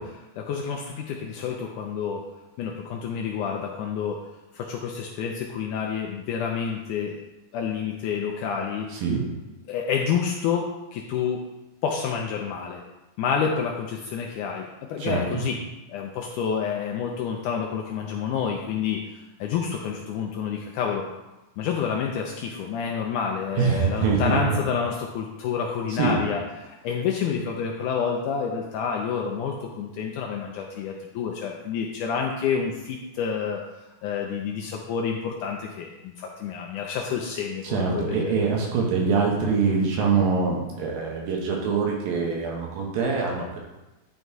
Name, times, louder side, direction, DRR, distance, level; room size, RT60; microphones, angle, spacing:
voice 1, 0.0-2.3 2.6-4.2 4.5-7.2 7.5-8.9 9.7-11.4 11.8-12.8 13.2-15.6 15.9-21.0 21.6-33.6 34.0-38.3, left 6 dB, 75° left, 1 dB, 1.9 m, -29 dB
voice 2, 15.0-15.4 23.6-24.6 26.0-26.2 37.6-43.6, right 5 dB, 75° right, -1 dB, 2.9 m, -24 dB
11.0 x 4.1 x 4.6 m, 1.0 s
omnidirectional pair, 4.1 m